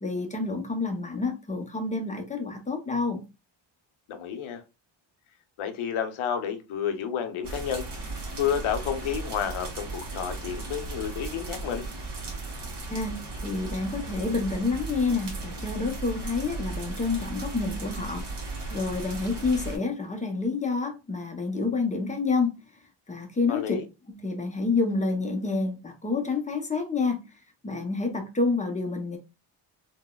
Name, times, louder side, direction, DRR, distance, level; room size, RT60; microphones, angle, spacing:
voice 1, 0.0-3.2 12.9-22.6 23.1-23.8 24.1-27.2 27.6-29.2, left 3 dB, 15° left, 0.6 m, -28 dB
voice 2, 4.1-4.6 5.6-8.1 8.4-11.8 23.5-23.9, left 8 dB, 75° left, 0.7 m, -30 dB
sound 1, 7.4-19.8, right 3 dB, 55° right, 1.6 m, -36 dB
3.9 x 2.2 x 2.2 m
cardioid pair, 115°, 50 cm